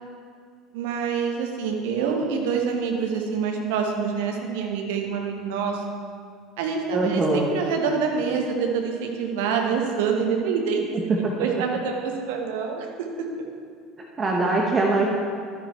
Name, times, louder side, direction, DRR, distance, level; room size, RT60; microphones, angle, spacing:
voice 1, 0.7-5.8 6.6-10.8 11.4-12.9, right 6 dB, 65° right, 2 dB, 1.2 m, -26 dB
voice 2, 6.9-7.5 10.9-11.3 14.2-15.1, right 3 dB, 25° right, -1 dB, 1.0 m, -22 dB
12.0 x 9.3 x 3.2 m, 2.2 s
figure-of-eight pair, 70°, 0 cm